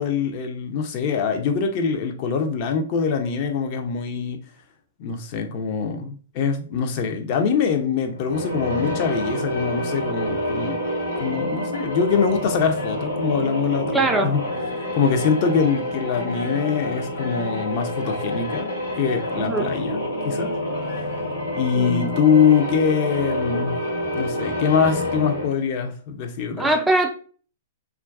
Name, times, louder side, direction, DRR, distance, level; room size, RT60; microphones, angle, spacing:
voice 1, 0.0-4.4 5.0-10.8 11.2-14.4 14.8-18.7 19.0-20.5 21.5-23.8 24.1-26.7, left 6 dB, 45° left, 5 dB, 0.5 m, -23 dB
sound 1, 8.1-25.7, left 1 dB, 80° left, 1.1 m, -28 dB
voice 2, 13.9-14.3 19.4-19.7 21.8-22.2 26.6-27.1, right 2 dB, 5° right, 4 dB, 0.3 m, -22 dB
2.3 x 2.2 x 2.3 m, 0.41 s
figure-of-eight pair, 110°, 0 cm